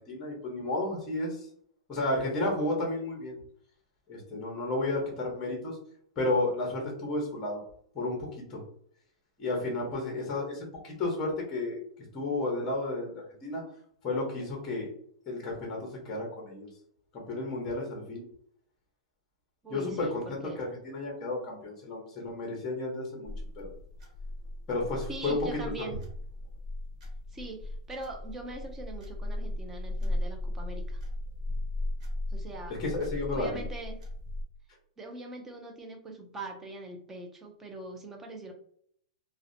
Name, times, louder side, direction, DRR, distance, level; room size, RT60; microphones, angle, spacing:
voice 1, 0.1-1.4 1.9-3.4 4.1-5.8 6.2-7.6 7.9-8.6 9.4-11.8 12.1-13.6 14.0-14.9 15.3-16.7 17.1-18.2 19.7-23.7 24.7-25.4 32.8-33.6, left 2 dB, 15° left, -1 dB, 0.7 m, -32 dB
voice 2, 19.6-20.7 25.1-26.0 27.3-31.0 32.3-32.8 33.3-34.0 35.0-38.5, right 2 dB, 10° right, 3 dB, 0.3 m, -42 dB
sound 1, 23.2-34.4, left 1 dB, 90° right, 1.0 m, -36 dB
2.6 x 2.0 x 2.6 m, 0.64 s
supercardioid pair, 175°, 4 cm